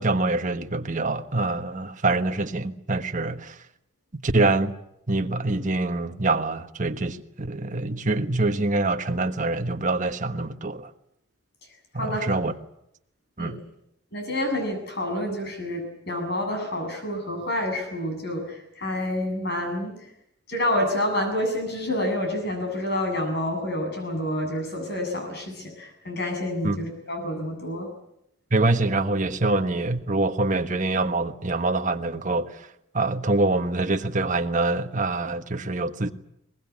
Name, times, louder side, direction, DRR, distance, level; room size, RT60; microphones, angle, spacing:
voice 1, 0.0-3.6 4.2-4.7 5.1-10.9 11.9-12.5 13.4-13.6 26.6-26.8 28.5-32.6 32.9-36.1, right 2 dB, 35° right, 1.3 m, -25 dB
voice 2, 12.0-12.3 13.4-13.5 14.1-20.0 20.5-27.9, left 1 dB, 50° left, 7.9 m, -28 dB
22.5 x 20.0 x 9.7 m
head